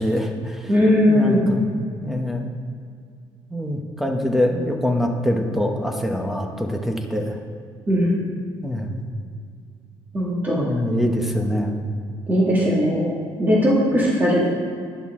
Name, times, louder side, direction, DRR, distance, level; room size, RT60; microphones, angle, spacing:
voice 1, 0.0-0.7 1.1-2.5 3.5-7.4 8.6-8.9 10.6-11.8, left 1 dB, 5° right, 3 dB, 1.0 m, -24 dB
voice 2, 0.7-1.4 7.9-8.1 10.1-10.7 12.3-14.5, equal, 20° right, -5 dB, 2.1 m, -19 dB
11.5 x 10.5 x 3.7 m, 2.2 s
cardioid pair, 160°, 10 cm